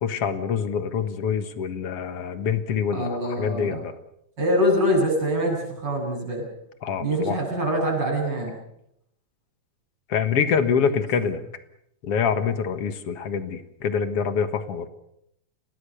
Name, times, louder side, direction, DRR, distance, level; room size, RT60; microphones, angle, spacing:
voice 1, 0.0-3.9 6.8-7.4 10.1-11.4 12.0-14.9, left 6 dB, 55° left, 10 dB, 2.2 m, -25 dB
voice 2, 2.9-3.8 4.4-6.5 7.0-8.6 11.2-11.3, equal, 35° right, -1 dB, 8.5 m, -24 dB
29.0 x 18.5 x 6.8 m, 0.76 s
omnidirectional pair, 3.4 m